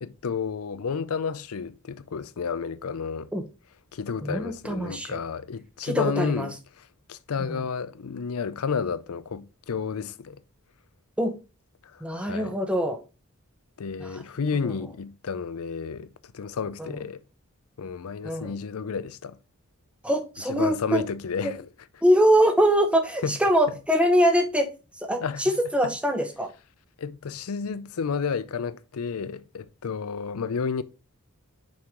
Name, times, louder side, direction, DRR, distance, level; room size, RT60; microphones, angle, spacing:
voice 1, 0.0-3.3 3.9-10.4 11.8-12.6 13.8-17.2 17.8-19.4 20.6-21.7 23.2-23.4 25.2-25.4 25.8-25.9 27.0-30.8, left 5 dB, 75° left, 0.5 m, -31 dB
voice 2, 4.2-5.2 5.8-6.5 7.4-7.6 11.2-11.3 12.0-13.0 14.0-14.1 16.8-16.9 18.2-18.5 20.0-21.0 21.4-21.5 22.0-24.7 25.1-26.5, equal, 5° right, 0.8 m, -23 dB
6.1 x 4.7 x 3.6 m
head